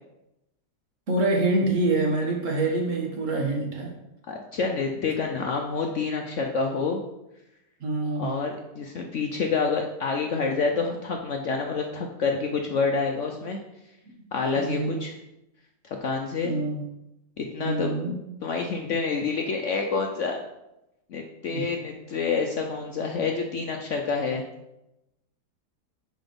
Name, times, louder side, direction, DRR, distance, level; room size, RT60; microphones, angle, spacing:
voice 1, 1.1-3.9 7.8-8.4 14.6-15.0 16.4-16.9 17.6-18.2 21.5-21.7, right 2 dB, 50° right, 1 dB, 1.5 m, -26 dB
voice 2, 4.3-7.0 8.2-13.6 14.3-15.1 16.0-16.5 17.4-17.9 18.4-20.4 21.1-24.4, left 4 dB, 60° left, 2 dB, 0.8 m, -28 dB
5.9 x 5.2 x 5.1 m, 0.91 s
omnidirectional pair, 1.8 m